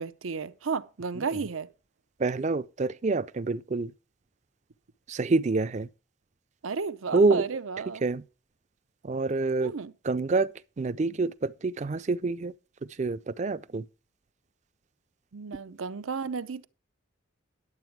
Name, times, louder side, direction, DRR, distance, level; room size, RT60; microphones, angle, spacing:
voice 1, 0.0-1.7 6.6-8.0 9.6-9.9 15.3-16.7, right 5 dB, 90° right, 0.7 m, -33 dB
voice 2, 2.2-3.9 5.1-5.9 7.1-7.4 8.0-8.2 9.0-9.7 10.1-10.5 10.8-12.5 13.0-13.8, right 3 dB, 35° right, 0.4 m, -27 dB
11.0 x 7.9 x 4.6 m
head